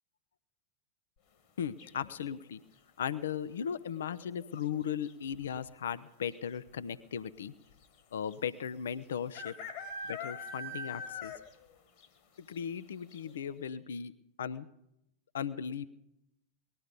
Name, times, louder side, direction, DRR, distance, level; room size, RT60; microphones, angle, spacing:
voice 1, 1.6-2.6 3.0-7.5 8.1-9.5 10.0-11.3 12.4-14.1 14.4-14.7 15.3-15.9, left 8 dB, 65° left, 15 dB, 0.5 m, -37 dB
sound 1, 1.8-2.3 4.1-4.5 4.7-4.8 5.1-5.6 6.4-6.5 6.7-6.8 8.3-8.4 9.3-11.6 12.0-12.1 12.6-12.7 13.1-13.2, left 3 dB, 45° left, 1.6 m, -42 dB
19.5 x 12.0 x 5.3 m, 0.83 s
figure-of-eight pair, 90°, 0 cm